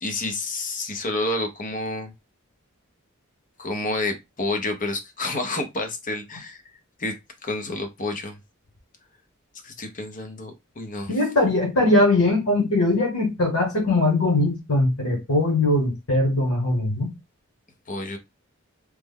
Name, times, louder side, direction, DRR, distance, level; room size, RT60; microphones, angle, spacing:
voice 1, 0.0-2.1 3.6-6.6 7.0-7.2 7.4-8.4 9.6-11.2 17.9-18.2, left 2 dB, 40° left, 0.7 m, -29 dB
voice 2, 11.1-17.1, left 2 dB, 85° left, 1.2 m, -21 dB
3.2 x 2.1 x 3.5 m
head